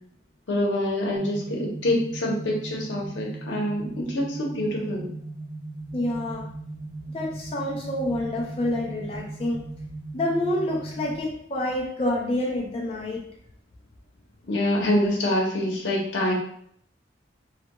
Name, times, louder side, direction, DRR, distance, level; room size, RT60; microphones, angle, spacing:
voice 1, 0.5-5.1 14.5-16.3, left 1 dB, 85° left, -2 dB, 0.7 m, -25 dB
sound 1, 1.1-11.2, right 2 dB, 55° right, 0.4 m, -38 dB
voice 2, 5.9-6.4 7.1-9.6 10.1-13.2, left 1 dB, 30° left, -2 dB, 0.3 m, -27 dB
2.2 x 2.2 x 2.9 m, 0.65 s
head